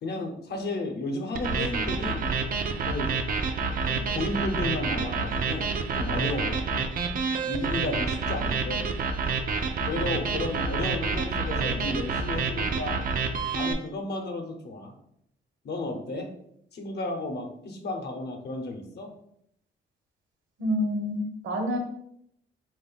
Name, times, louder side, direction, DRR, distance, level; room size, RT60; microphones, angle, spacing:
voice 1, 0.0-2.3 2.7-3.2 3.8-6.6 7.5-8.9 9.8-13.0 13.5-14.9 15.6-16.3 16.7-19.1, left 2 dB, 55° left, 3 dB, 0.8 m, -33 dB
sound 1, 1.3-13.7, right 4 dB, 45° right, 0.5 m, -28 dB
voice 2, 20.6-21.8, equal, 70° right, 2 dB, 1.2 m, -28 dB
3.3 x 2.5 x 3.9 m, 0.73 s
cardioid pair, 90°, 20 cm